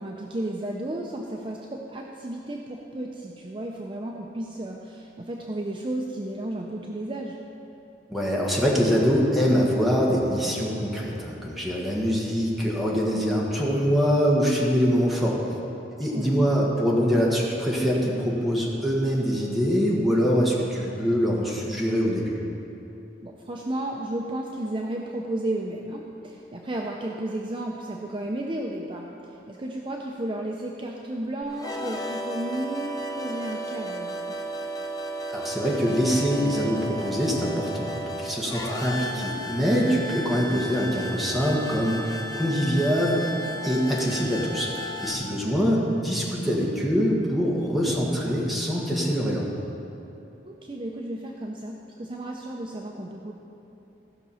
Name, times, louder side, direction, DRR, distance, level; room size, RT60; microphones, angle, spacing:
voice 1, 0.0-7.4 16.1-16.5 23.2-34.4 45.4-45.8 50.5-53.3, right 1 dB, 30° right, 0 dB, 0.5 m, -33 dB
voice 2, 8.1-15.4 16.0-22.3 35.3-43.2 43.6-44.7 45.0-49.5, equal, ahead, -4 dB, 1.5 m, -24 dB
Squaggly Pad Chords, 31.4-45.1, equal, 20° left, 0.7 m, -34 dB
15.0 x 6.0 x 5.6 m, 2.9 s
head